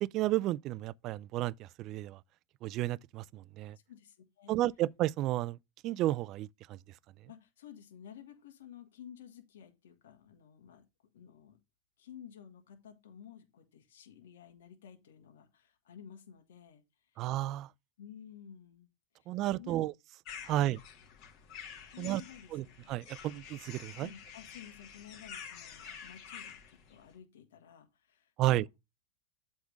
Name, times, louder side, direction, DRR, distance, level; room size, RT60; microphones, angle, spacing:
voice 1, 0.0-2.2 2.6-3.8 4.5-5.6 5.8-6.8 17.2-17.7 19.3-19.9 20.4-20.8 22.0-22.2 22.5-24.1 28.4-28.7, right 15 dB, 40° right, 0.3 m, -32 dB
voice 2, 3.9-4.5 7.3-10.9 11.1-11.6 12.0-17.3 18.0-18.9 19.1-19.3 19.6-19.8 20.5-20.7 21.9-22.5 22.8-22.9 24.0-28.7, left 9 dB, 80° left, 1.6 m, -53 dB
sound 1, 20.3-27.1, left 7 dB, 45° left, 2.5 m, -49 dB
7.9 x 3.6 x 6.2 m
supercardioid pair, 125°, 0 cm